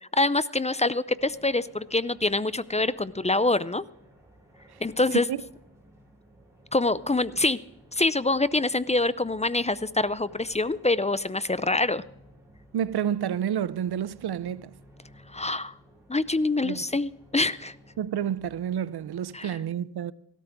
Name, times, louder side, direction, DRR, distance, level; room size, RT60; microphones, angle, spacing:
voice 1, 0.2-3.8 4.8-5.3 6.7-7.6 7.9-12.0 15.3-15.7 16.1-17.8 19.3-19.6, left 2 dB, 20° left, 0.4 m, -25 dB
sound 1, 1.0-19.6, equal, 5° right, 5.5 m, -55 dB
voice 2, 12.7-14.8 16.6-16.8 18.0-20.1, right 9 dB, 85° right, 0.5 m, -29 dB
17.5 x 13.0 x 3.5 m
wide cardioid pair, 70°, 38 cm